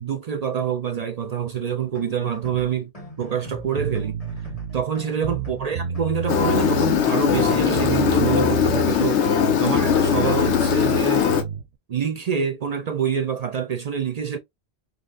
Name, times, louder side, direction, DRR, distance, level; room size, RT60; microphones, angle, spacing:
voice 1, 0.0-2.9 3.2-4.2 4.7-11.3 11.9-14.4, right 7 dB, 55° right, 0.4 m, -26 dB
sound 1, 1.8-8.0, right 2 dB, 35° left, 1.5 m, -40 dB
sound 2, 3.8-4.8 5.2-7.0 7.3-9.0 9.3-11.6, right 5 dB, 85° right, 0.9 m, -29 dB
Engine, 6.3-11.4, left 8 dB, 85° left, 1.0 m, -20 dB
4.3 x 2.9 x 2.4 m
omnidirectional pair, 1.1 m